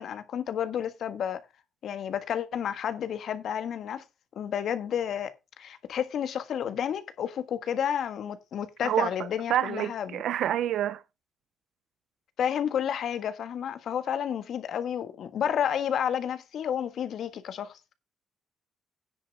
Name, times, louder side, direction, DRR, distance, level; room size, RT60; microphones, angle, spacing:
voice 1, 0.0-1.4 1.8-4.0 4.3-10.2 12.4-17.8, left 9 dB, 65° left, 1.5 m, -31 dB
voice 2, 8.8-11.0, right 11 dB, 75° right, 0.8 m, -28 dB
9.9 x 5.6 x 6.4 m
cardioid pair, 90°, 0 cm